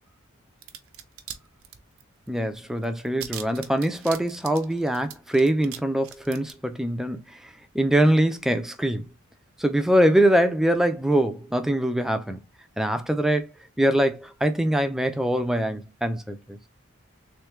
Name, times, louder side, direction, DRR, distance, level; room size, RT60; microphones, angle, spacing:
sound 1, 0.6-1.4 1.6-2.3 2.5-2.6 2.8-5.8 6.0-6.5, right 10 dB, 75° right, 0.7 m, -39 dB
voice 1, 2.3-9.1 9.6-12.4 12.8-13.5 13.8-16.6, right 1 dB, ahead, 0.5 m, -23 dB
3.5 x 3.2 x 3.1 m
head